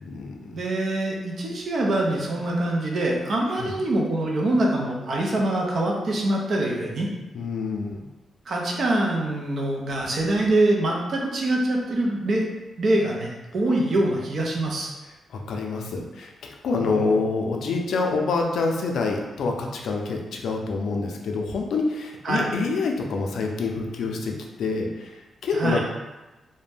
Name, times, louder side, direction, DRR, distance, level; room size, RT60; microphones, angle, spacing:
voice 1, 0.0-0.6 3.5-3.8 7.3-8.0 15.3-25.8, left 4 dB, 75° left, 1 dB, 0.4 m, -27 dB
voice 2, 0.5-7.1 8.5-12.4 12.8-14.9 16.9-17.1 22.2-22.5 25.5-25.8, right 1 dB, 50° right, -1 dB, 0.5 m, -24 dB
2.5 x 2.1 x 3.3 m, 1.1 s
wide cardioid pair, 165°, 0 cm